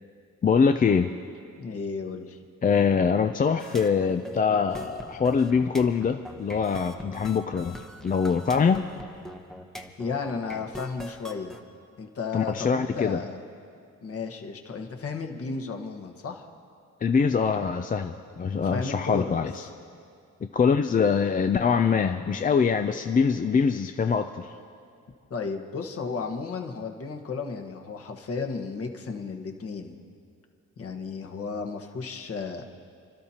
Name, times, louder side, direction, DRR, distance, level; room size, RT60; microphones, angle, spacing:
voice 1, 0.4-1.1 2.6-7.8 8.0-8.8 12.3-13.2 17.0-19.6 20.5-24.5, left 6 dB, 30° left, 7 dB, 0.5 m, -23 dB
voice 2, 1.6-2.4 10.0-11.5 12.0-13.4 14.0-16.5 18.5-19.7 25.3-29.9 30.8-32.7, left 4 dB, 50° left, 4 dB, 1.4 m, -34 dB
sound 1, 3.6-11.6, left 1 dB, ahead, 0.9 m, -43 dB
29.5 x 12.0 x 2.9 m, 2.3 s
cardioid pair, 90°, 30 cm